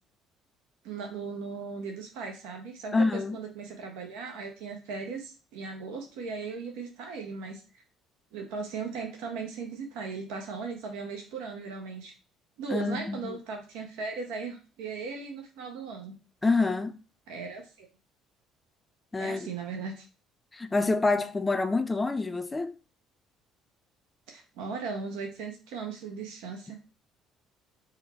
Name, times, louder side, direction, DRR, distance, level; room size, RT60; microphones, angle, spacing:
voice 1, 0.8-7.8 8.3-12.1 12.6-16.1 17.3-17.9 19.2-20.0 24.3-26.8, right 4 dB, 75° right, 0.6 m, -37 dB
voice 2, 2.9-3.4 12.7-13.4 16.4-16.9 19.1-19.5 20.5-22.7, left 3 dB, 20° left, 0.4 m, -27 dB
3.8 x 2.2 x 4.1 m
hypercardioid pair, 60°, 0 cm